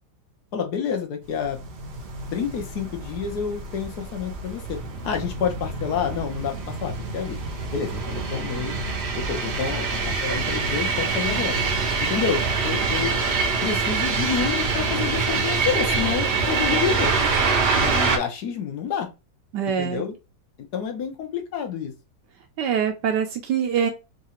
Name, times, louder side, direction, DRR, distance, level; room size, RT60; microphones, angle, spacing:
voice 1, 0.5-1.6 2.3-7.4 7.7-8.8 9.2-11.6 12.0-13.1 13.6-17.1 17.7-19.1 19.6-20.1 20.6-21.9, left 7 dB, 65° left, 5 dB, 1.3 m, -29 dB
sound 1, 1.4-18.2, right 4 dB, 50° right, 0.8 m, -25 dB
voice 2, 19.5-20.0 22.6-23.9, right 8 dB, 75° right, 4 dB, 1.2 m, -24 dB
3.8 x 2.5 x 4.3 m, 0.28 s
omnidirectional pair, 1.9 m